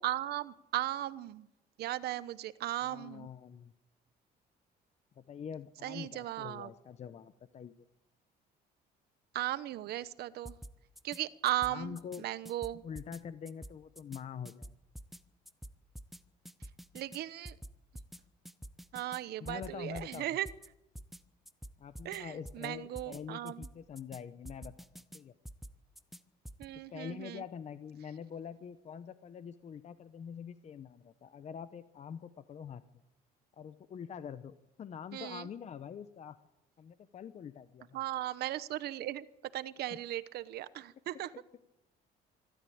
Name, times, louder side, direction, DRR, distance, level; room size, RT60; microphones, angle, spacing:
voice 1, 0.0-1.5 1.8-3.3 5.8-6.7 9.3-10.5 11.0-12.8 16.6-17.6 18.9-20.5 22.0-23.7 26.6-27.4 35.1-35.5 37.9-39.3 39.5-41.3, right 14 dB, 70° right, 16 dB, 1.0 m, -37 dB
voice 2, 2.8-3.7 5.2-7.8 11.6-12.3 12.8-14.7 19.4-20.3 21.8-25.3 26.9-32.8 33.6-36.4 36.8-38.0 39.9-40.0, left 7 dB, 40° left, 13 dB, 0.8 m, -45 dB
sound 1, 10.4-11.2 11.5-12.2 12.4-13.2 13.4-14.2 14.4-15.2 15.5-16.2 16.4-17.2 17.4-18.2 18.4-19.2 19.4-20.2 20.4-20.7 20.9-21.2 21.4-22.2 22.4-22.7 22.9-23.2 23.5-24.2 24.4-25.2 25.4-26.2 26.4-26.7, right 1 dB, ahead, 0.9 m, -48 dB
25.0 x 13.0 x 8.7 m, 0.95 s
cardioid pair, 110°, 17 cm